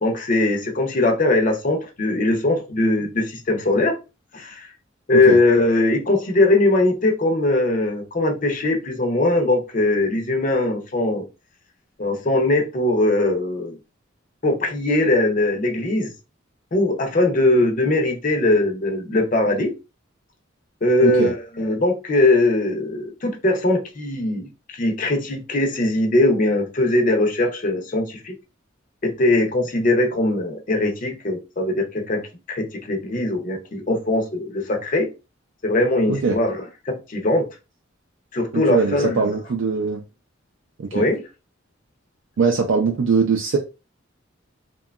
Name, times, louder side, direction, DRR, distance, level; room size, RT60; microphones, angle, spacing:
voice 1, 0.0-4.0 4.3-4.7 5.1-11.3 12.0-13.8 14.4-16.1 16.7-19.7 20.8-24.4 24.7-28.3 29.0-32.2 32.5-35.1 35.6-37.5 38.3-39.3 40.9-41.2, left 2 dB, 40° left, 0.6 m, -20 dB
voice 2, 38.5-40.0 40.8-41.0 42.4-43.6, right 5 dB, 65° right, 0.4 m, -21 dB
2.7 x 2.2 x 2.3 m
head